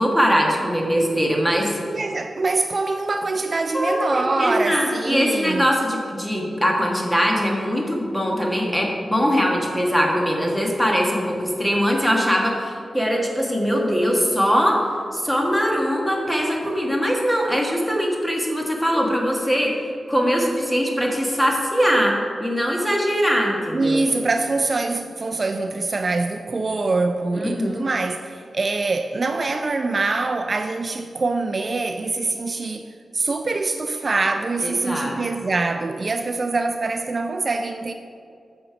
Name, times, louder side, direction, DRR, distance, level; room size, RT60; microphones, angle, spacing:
voice 1, 0.0-1.8 3.7-14.8 15.1-24.0 27.3-27.8 34.6-35.2, equal, 5° left, -1 dB, 1.5 m, -21 dB
voice 2, 1.9-5.7 23.7-37.9, right 3 dB, 45° right, 6 dB, 0.4 m, -24 dB
8.7 x 6.2 x 4.8 m, 2.4 s
wide cardioid pair, 95°, 0 cm